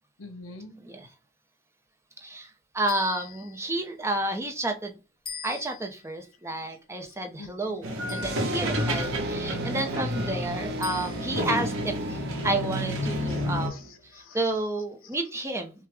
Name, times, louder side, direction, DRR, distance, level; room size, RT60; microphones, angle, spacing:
voice 1, 0.2-0.8 7.4-7.8 13.3-14.5, left 3 dB, 90° left, 0.9 m, -46 dB
voice 2, 0.7-1.1 2.2-4.9 5.4-13.9 14.3-15.7, right 2 dB, 15° right, 0.7 m, -31 dB
sound 1, 2.9-3.7 5.3-6.1 8.1-8.8 10.8-11.5, left 5 dB, 25° left, 1.8 m, -42 dB
sound 2, 7.8-13.7, equal, 85° right, 1.3 m, -30 dB
sound 3, 8.2-14.1, right 4 dB, 55° right, 0.6 m, -38 dB
5.9 x 2.3 x 3.5 m
head